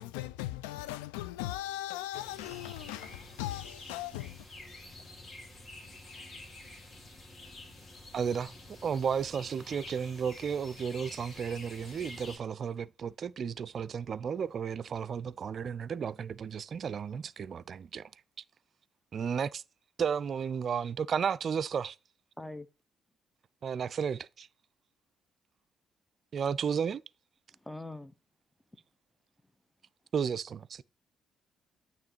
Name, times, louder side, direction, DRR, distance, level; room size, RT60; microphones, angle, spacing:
voice 1, 0.0-4.5, left 14 dB, 80° left, 0.4 m, -38 dB
sound 1, 2.1-12.4, left 2 dB, 45° left, 2.0 m, -49 dB
voice 2, 8.1-8.5 8.8-18.1 19.1-19.6 20.0-22.0 23.6-24.5 26.3-27.0 30.1-30.8, right 7 dB, 55° right, 0.3 m, -33 dB
voice 3, 22.4-22.7 27.5-28.1, left 2 dB, 10° left, 0.6 m, -42 dB
8.9 x 3.1 x 4.6 m
hypercardioid pair, 45°, 0 cm